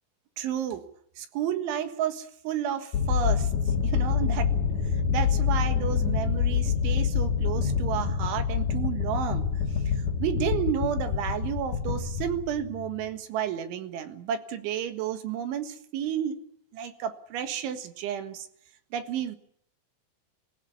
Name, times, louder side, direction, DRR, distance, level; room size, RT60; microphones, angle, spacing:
voice 1, 0.4-0.8 1.2-3.5 3.8-4.5 5.1-9.5 10.2-16.4 16.7-18.5 18.9-19.4, right 9 dB, 75° right, 8 dB, 4.0 m, -31 dB
sound 1, 2.9-13.0, left 6 dB, 45° left, 3.5 m, -26 dB
24.5 x 16.0 x 8.4 m, 0.69 s
omnidirectional pair, 5.5 m